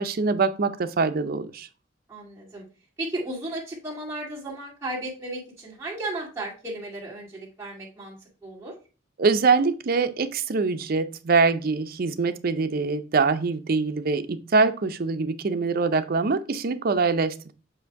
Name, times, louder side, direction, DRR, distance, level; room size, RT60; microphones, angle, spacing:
voice 1, 0.0-1.7 9.2-17.5, right 4 dB, 50° right, 0.5 m, -24 dB
voice 2, 2.1-2.6 3.0-8.2 8.4-8.7, right 1 dB, 15° right, 2.2 m, -34 dB
7.8 x 2.6 x 4.6 m
head